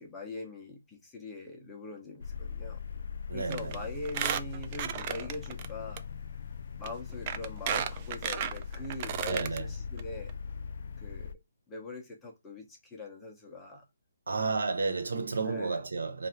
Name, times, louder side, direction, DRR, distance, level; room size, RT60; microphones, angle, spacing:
voice 1, 0.0-2.8 3.3-6.0 6.8-10.3 11.0-11.3 11.7-13.8 15.1-15.8, left 2 dB, 10° left, 0.8 m, -42 dB
sound 1, 2.2-11.3, left 6 dB, 55° left, 0.4 m, -40 dB
voice 2, 3.3-3.8 9.3-9.7 14.3-16.3, right 4 dB, 80° right, 0.8 m, -32 dB
Squeak, 3.5-3.8 4.1-5.7 6.0-6.1 6.8-6.9 7.3-9.6 10.0-10.1 10.3-10.4, right 9 dB, 30° right, 0.3 m, -33 dB
3.3 x 2.6 x 4.4 m
hypercardioid pair, 165°, 0 cm